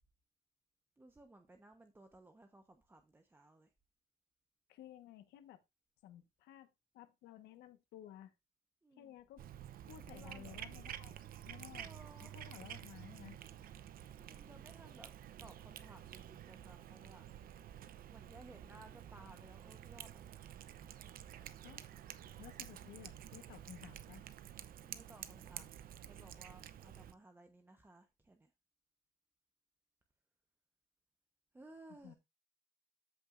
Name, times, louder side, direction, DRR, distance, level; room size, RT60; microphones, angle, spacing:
voice 1, 1.0-3.7 8.8-9.2 10.1-10.6 11.7-12.3 14.1-15.1 15.4-17.3 18.1-20.5 24.8-28.5 31.5-32.1, right 2 dB, 15° right, 1.1 m, -59 dB
voice 2, 4.7-5.6 6.0-8.3 9.0-9.4 9.8-11.9 12.2-13.4 21.6-21.9 22.4-24.2 32.0-32.1, left 12 dB, 80° left, 1.4 m, -55 dB
Cat, 9.4-27.1, right 11 dB, 60° right, 0.8 m, -51 dB
14.0 x 5.4 x 2.6 m
cardioid pair, 110°, 17 cm